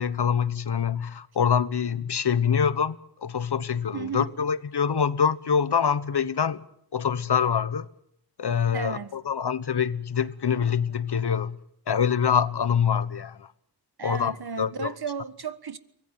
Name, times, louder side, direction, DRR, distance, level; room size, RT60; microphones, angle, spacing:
voice 1, 0.0-6.6 6.9-7.9 8.4-11.6 11.9-13.5 14.0-14.9, left 7 dB, 70° left, 1.2 m, -25 dB
voice 2, 3.9-4.3 8.7-9.2 14.0-15.8, right 6 dB, 65° right, 1.6 m, -34 dB
23.5 x 17.0 x 9.2 m
cardioid pair, 50°, 41 cm